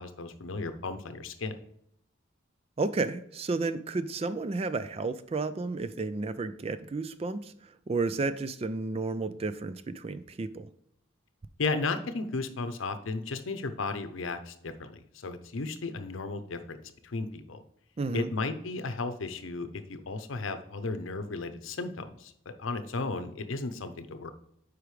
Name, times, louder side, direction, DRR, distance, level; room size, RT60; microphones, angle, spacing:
voice 1, 0.0-1.6 11.6-17.6 18.1-22.3 22.6-24.3, left 3 dB, 85° left, 9 dB, 0.7 m, -34 dB
voice 2, 2.8-10.7 18.0-18.3, right 3 dB, 30° right, 13 dB, 0.3 m, -32 dB
8.1 x 4.9 x 3.2 m, 0.73 s
head